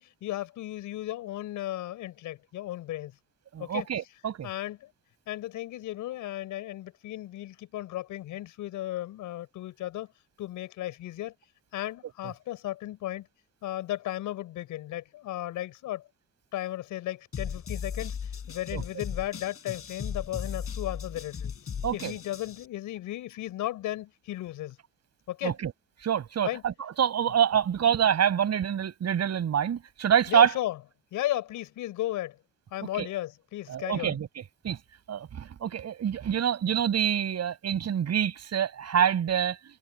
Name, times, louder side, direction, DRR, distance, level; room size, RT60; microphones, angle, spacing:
voice 1, 0.0-3.1 3.6-3.9 4.4-4.9 5.3-10.1 10.4-11.3 11.7-13.3 13.6-16.1 16.5-21.5 21.9-24.8 25.3-25.5 26.4-26.6 30.3-30.8 31.1-32.4 32.7-34.1, left 14 dB, 90° left, 6.0 m, -35 dB
voice 2, 3.5-4.5 18.7-18.8 21.8-22.1 25.4-25.7 26.0-30.5 33.0-33.1 33.7-34.3 34.6-34.8 35.1-39.6, right 9 dB, 60° right, 6.3 m, -26 dB
sound 1, 17.3-22.7, left 7 dB, 50° left, 4.6 m, -37 dB
cardioid pair, 90°, 30 cm